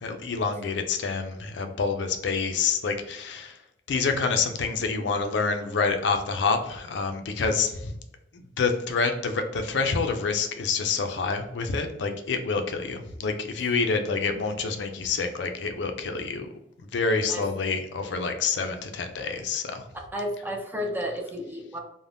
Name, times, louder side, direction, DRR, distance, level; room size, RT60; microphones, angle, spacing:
voice 1, 0.0-3.6 3.9-8.0 8.6-16.5 16.9-19.9, left 4 dB, 70° left, 6 dB, 0.4 m, -27 dB
voice 2, 20.1-21.8, equal, 10° right, 1 dB, 0.4 m, -33 dB
3.3 x 2.1 x 2.5 m, 0.85 s
head